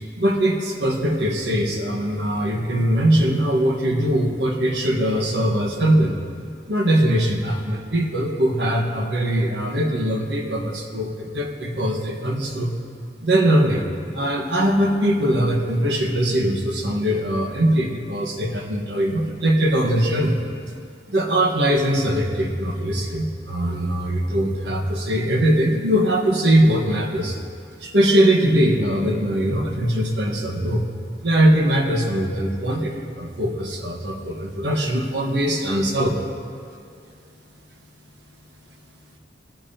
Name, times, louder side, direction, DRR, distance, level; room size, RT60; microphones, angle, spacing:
voice 1, 0.2-6.2 6.7-12.7 13.2-13.8 14.1-20.4 21.1-27.4 27.8-30.9 31.2-36.2, right 1 dB, 80° right, 2 dB, 1.4 m, -21 dB
19.5 x 8.8 x 2.8 m, 2.3 s
head